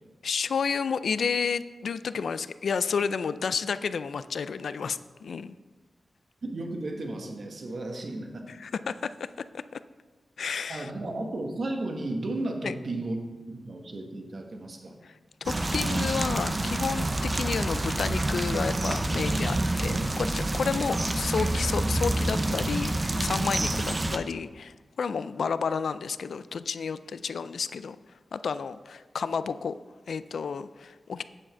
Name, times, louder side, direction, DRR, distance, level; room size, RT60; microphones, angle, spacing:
voice 1, 0.2-5.5 8.5-9.3 9.5-9.8 10.4-10.9 12.6-12.7 15.0-15.1 15.4-28.0 28.3-29.8 30.1-31.2, left 6 dB, 85° left, 14 dB, 0.3 m, -31 dB
voice 2, 6.4-8.4 10.7-13.2 13.5-15.0, right 2 dB, 55° right, 3 dB, 1.3 m, -34 dB
sound 1, 15.5-24.2, right 2 dB, 30° right, 0.6 m, -28 dB
8.6 x 7.4 x 4.4 m, 1.3 s
wide cardioid pair, 105°, 0 cm